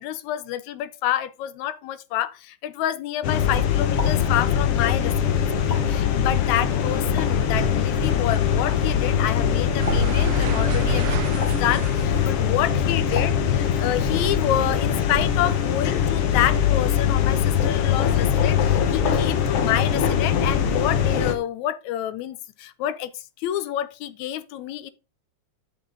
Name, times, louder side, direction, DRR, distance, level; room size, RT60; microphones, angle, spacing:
voice 1, 0.0-24.9, left 12 dB, 80° left, 2.0 m, -28 dB
sound 1, 3.2-21.3, left 8 dB, 60° left, 1.8 m, -22 dB
sound 2, 4.0-4.4 5.7-6.1 7.2-7.5 8.7-9.0 9.9-10.3 11.4-11.8 13.1-13.5, left 2 dB, 25° left, 2.0 m, -35 dB
sound 3, 9.8-14.5 14.8-16.4, right 11 dB, 85° right, 2.0 m, -32 dB
10.5 x 5.9 x 3.7 m
omnidirectional pair, 3.4 m